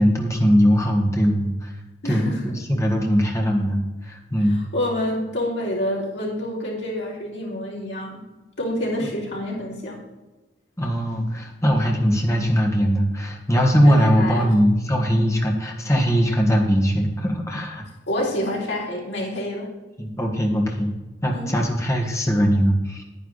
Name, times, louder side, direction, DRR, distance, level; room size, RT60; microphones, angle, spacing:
voice 1, 0.0-1.7 2.0-4.6 10.8-17.8 20.0-20.9 21.2-23.0, equal, 15° left, 1 dB, 1.6 m, -20 dB
voice 2, 2.0-2.4 4.4-8.2 8.6-10.0 13.9-14.6 18.1-19.7 21.3-21.5, left 1 dB, 75° left, -3 dB, 3.8 m, -27 dB
9.8 x 9.6 x 4.1 m, 1.1 s
head